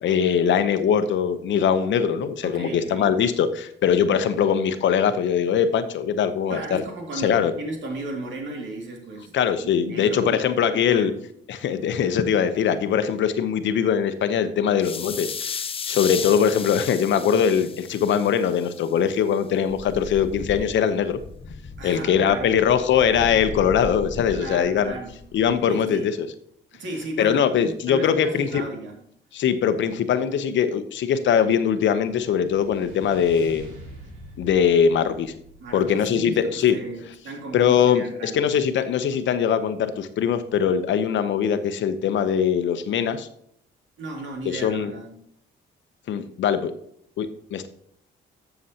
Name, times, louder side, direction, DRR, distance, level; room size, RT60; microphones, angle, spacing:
voice 1, 0.0-6.8 7.2-7.5 9.3-11.1 11.5-15.3 15.9-21.2 21.8-24.9 25.3-26.3 27.2-28.6 29.3-33.7 34.4-35.3 35.7-36.8 37.5-43.3 44.5-44.9 46.1-46.7 47.2-47.7, left 8 dB, 70° left, 10 dB, 0.8 m, -21 dB
voice 2, 2.4-3.1 6.5-9.3 9.6-11.2 21.8-22.6 24.3-25.2 25.6-26.1 26.7-29.0 35.6-38.4 44.0-45.1, right 2 dB, 70° right, 1 dB, 2.5 m, -35 dB
sound 1, 14.8-18.9, left 6 dB, 30° left, 0.4 m, -34 dB
sound 2, 19.7-25.5, left 3 dB, 50° left, 1.4 m, -38 dB
sound 3, 31.6-37.0, right 1 dB, 90° right, 2.9 m, -45 dB
13.0 x 6.9 x 2.9 m, 0.68 s
cardioid pair, 90°, 20 cm